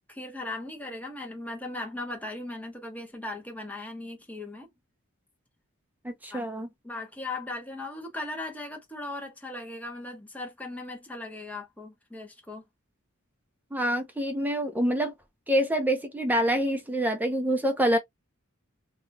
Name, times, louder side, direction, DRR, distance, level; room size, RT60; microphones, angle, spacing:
voice 1, 0.1-4.7 6.3-6.5 6.8-12.6, left 2 dB, 5° left, 1.0 m, -38 dB
voice 2, 6.0-6.7 13.7-15.1 15.5-18.0, equal, 10° right, 0.6 m, -26 dB
3.0 x 2.9 x 2.2 m
head